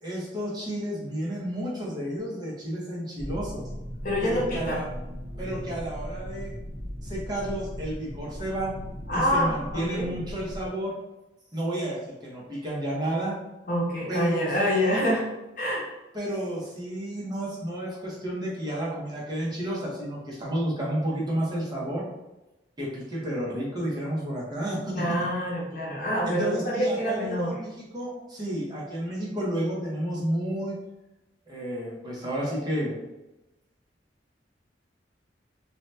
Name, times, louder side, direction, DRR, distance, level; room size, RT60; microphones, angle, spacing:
voice 1, 0.0-3.6 4.2-4.9 5.4-6.5 7.0-8.7 9.1-10.9 11.5-13.3 14.1-15.0 16.1-22.0 22.8-25.0 26.2-30.7 31.5-32.9, right 1 dB, 25° right, -5 dB, 0.8 m, -31 dB
sound 1, 3.2-10.7, equal, 60° right, 1.1 m, -38 dB
voice 2, 4.0-4.8 9.1-10.1 13.7-15.2 15.6-15.9 24.9-27.5, equal, 50° left, -4 dB, 0.9 m, -26 dB
2.7 x 2.2 x 3.2 m, 0.99 s
head